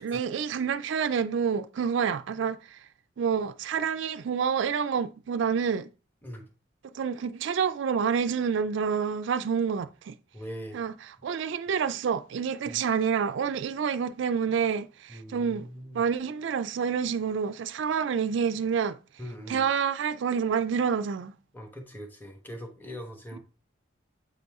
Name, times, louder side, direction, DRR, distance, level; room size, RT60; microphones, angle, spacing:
voice 1, 0.0-2.8 3.2-5.9 6.9-10.1 10.7-10.9 11.2-15.7 15.9-19.0 19.5-21.3, right 6 dB, 75° right, 0.4 m, -28 dB
voice 2, 10.3-10.8 12.6-12.8 15.1-16.0 19.2-19.7 21.5-23.4, equal, 10° left, 1.1 m, -41 dB
8.0 x 4.1 x 3.5 m
head